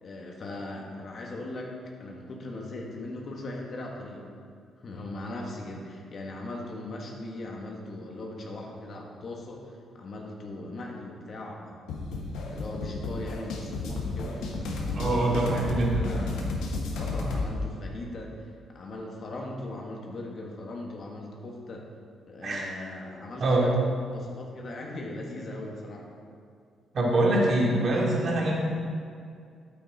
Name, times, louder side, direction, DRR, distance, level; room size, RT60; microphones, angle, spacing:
voice 1, 0.0-1.7 2.0-4.3 4.8-11.8 12.5-14.5 14.8-15.6 16.0-16.3 16.9-21.8 22.3-23.8 24.1-26.1, left 2 dB, 50° left, -1 dB, 1.6 m, -39 dB
sound 1, 11.9-17.5, left 3 dB, 85° left, 1.4 m, -32 dB
voice 2, 14.9-16.1 22.4-22.7 23.4-23.7 26.9-28.6, right 2 dB, 50° right, -3 dB, 2.5 m, -24 dB
9.3 x 8.5 x 4.3 m, 2.3 s
cardioid pair, 90°, 0 cm